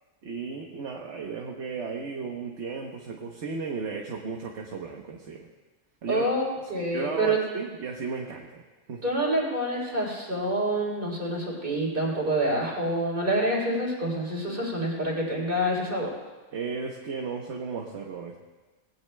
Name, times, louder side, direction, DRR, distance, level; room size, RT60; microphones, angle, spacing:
voice 1, 0.2-5.5 6.0-6.3 6.8-8.6 8.9-9.0 16.5-18.4, right 5 dB, 60° right, 1 dB, 1.2 m, -34 dB
voice 2, 6.1-7.4 9.0-16.1, right 1 dB, 40° right, -3 dB, 3.7 m, -27 dB
19.5 x 17.0 x 2.2 m, 1.3 s
omnidirectional pair, 1.3 m